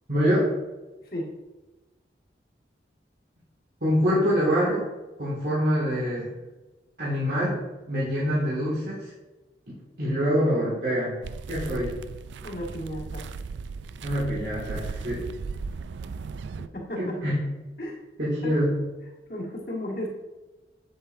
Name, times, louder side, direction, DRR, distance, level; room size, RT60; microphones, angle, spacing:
voice 1, 0.1-0.5 3.8-4.9 5.2-6.3 7.0-7.6 7.9-9.1 9.7-11.2 11.5-12.0 14.0-15.3 17.0-17.4 18.2-18.8, equal, 65° right, -9 dB, 2.1 m, -25 dB
sound 1, 11.2-16.7, right 4 dB, 85° right, 0.4 m, -36 dB
voice 2, 12.4-13.3 16.6-17.2 17.8-18.0 18.4-18.6 19.3-20.1, left 1 dB, 55° left, -3 dB, 1.9 m, -34 dB
8.2 x 7.8 x 2.6 m, 1.1 s
head